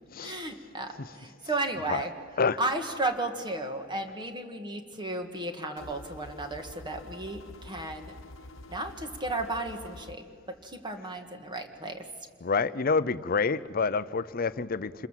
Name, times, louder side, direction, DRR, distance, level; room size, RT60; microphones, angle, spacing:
voice 1, 0.2-2.1 2.6-8.1 8.7-12.1, right 2 dB, 25° right, 1.9 m, -34 dB
sound 1, 5.8-10.2, left 2 dB, 80° left, 1.1 m, -47 dB
voice 2, 12.4-15.1, left 4 dB, 45° left, 0.6 m, -27 dB
27.5 x 21.0 x 7.5 m
head